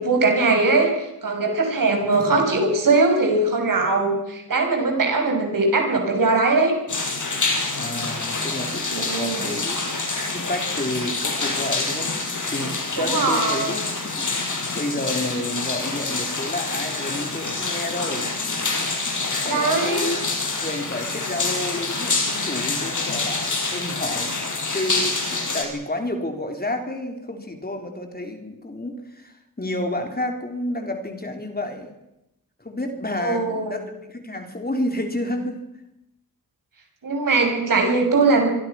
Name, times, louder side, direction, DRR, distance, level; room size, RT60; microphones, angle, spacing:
voice 1, 0.0-6.7 8.9-9.5 13.0-13.8 19.2-20.0 33.2-33.7 37.0-38.5, right 3 dB, 65° right, 3 dB, 6.6 m, -21 dB
sound 1, 6.9-25.6, left 3 dB, 55° left, 6.1 m, -26 dB
voice 2, 7.8-9.8 10.2-12.2 12.5-14.3 14.7-18.9 19.4-20.2 20.6-31.9 32.6-35.6, left 1 dB, 25° left, 4 dB, 4.1 m, -30 dB
25.5 x 23.0 x 6.1 m, 0.87 s
cardioid pair, 65°, 35 cm